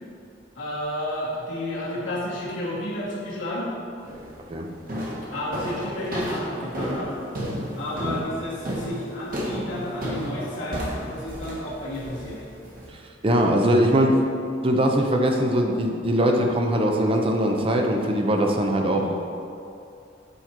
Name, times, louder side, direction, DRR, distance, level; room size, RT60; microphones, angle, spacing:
voice 1, 0.5-3.7 5.3-7.1 7.8-12.4 18.9-19.1, left 1 dB, 80° left, -8 dB, 1.5 m, -31 dB
sound 1, 4.1-4.4 4.9-12.9, equal, 50° right, 1.5 m, -32 dB
voice 2, 13.2-14.2 14.6-19.1, equal, 30° right, 2 dB, 0.6 m, -21 dB
8.1 x 4.3 x 4.5 m, 2.6 s
head